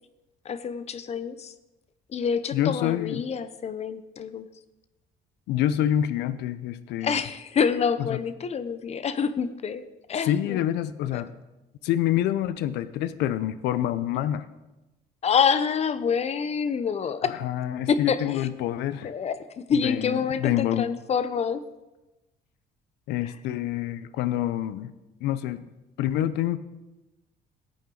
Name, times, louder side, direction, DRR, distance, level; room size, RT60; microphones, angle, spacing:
voice 1, 0.4-1.5 2.1-4.5 7.0-10.6 11.1-11.2 15.2-17.3 17.9-18.5 19.0-21.6 23.2-23.3, left 6 dB, 40° left, 13 dB, 0.7 m, -27 dB
voice 2, 2.5-3.2 5.5-7.2 8.0-8.2 10.2-11.3 11.8-14.5 17.2-19.1 19.7-20.9 23.1-24.9 25.2-25.7 26.0-26.6, left 12 dB, 85° left, 14 dB, 0.6 m, -27 dB
15.0 x 8.6 x 3.9 m, 1.0 s
cardioid pair, 110°, 17 cm